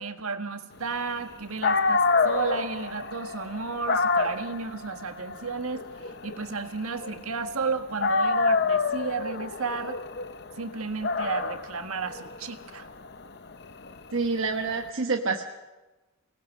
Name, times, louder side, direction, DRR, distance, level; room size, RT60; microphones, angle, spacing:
voice 1, 0.0-5.9 6.2-10.0 10.6-12.9, right 4 dB, 80° right, 7 dB, 1.6 m, -33 dB
Dog, 1.3-1.4 1.6-7.6 8.0-14.8, left 4 dB, 50° left, 0.8 m, -28 dB
voice 2, 14.1-15.4, right 4 dB, 60° right, 3 dB, 1.1 m, -27 dB
24.5 x 19.0 x 6.5 m, 1.1 s
head